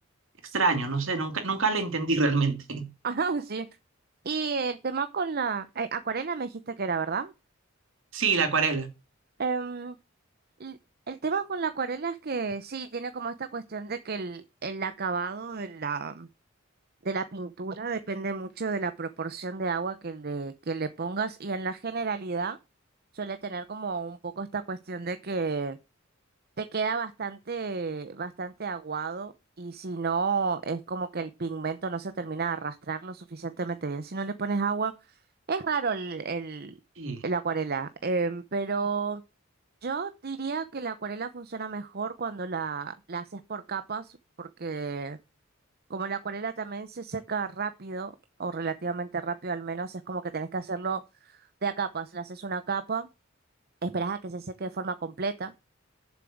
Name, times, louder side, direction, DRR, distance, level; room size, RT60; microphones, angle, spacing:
voice 1, 0.5-2.9 8.1-8.9 37.0-37.2, right 4 dB, 65° right, 2.7 m, -26 dB
voice 2, 3.0-3.7 4.2-7.3 9.4-10.0 10.6-10.8 11.1-16.3 17.0-22.6 23.1-25.8 26.6-29.3 29.6-34.9 35.5-36.8 37.2-39.2 39.8-45.2 45.9-48.1 48.4-53.1 53.8-55.5, right 4 dB, 50° right, 0.8 m, -32 dB
7.5 x 7.0 x 7.8 m
head